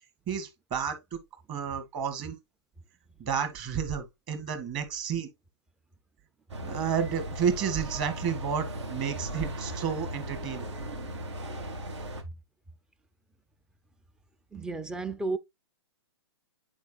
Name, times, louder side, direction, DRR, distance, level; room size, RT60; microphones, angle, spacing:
voice 1, 0.3-1.2 1.5-2.4 3.2-5.3 6.6-10.7, right 7 dB, 30° right, 1.8 m, -31 dB
sound 1, 6.5-12.2, right 1 dB, 80° right, 1.9 m, -37 dB
voice 2, 14.5-15.4, right 3 dB, 5° right, 0.4 m, -32 dB
9.4 x 4.8 x 2.4 m
hypercardioid pair, 135°, 14 cm